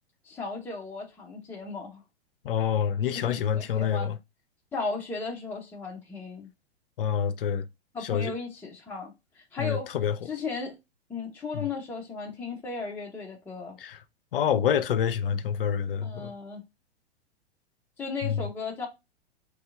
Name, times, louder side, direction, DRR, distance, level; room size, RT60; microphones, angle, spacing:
voice 1, 0.2-2.0 3.1-4.1 4.7-6.5 7.9-9.9 10.3-10.7 11.1-13.8 16.0-16.6 18.0-18.9, left 4 dB, 5° left, 0.6 m, -36 dB
voice 2, 2.4-4.2 7.0-7.7 8.0-8.3 9.6-10.3 11.5-11.7 13.8-14.0 14.3-16.3 18.2-18.5, left 8 dB, 60° left, 0.5 m, -27 dB
3.1 x 2.8 x 3.5 m
figure-of-eight pair, 105°, 32 cm